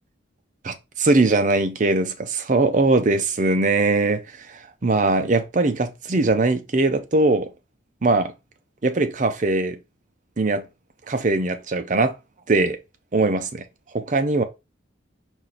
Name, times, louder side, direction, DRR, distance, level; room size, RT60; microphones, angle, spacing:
voice 1, 0.6-4.2 4.8-7.5 8.0-8.3 8.8-9.8 10.4-10.6 11.1-12.1 12.5-12.8 13.1-13.6 13.9-14.4, right 2 dB, 40° right, 0.5 m, -20 dB
4.6 x 2.5 x 3.9 m
head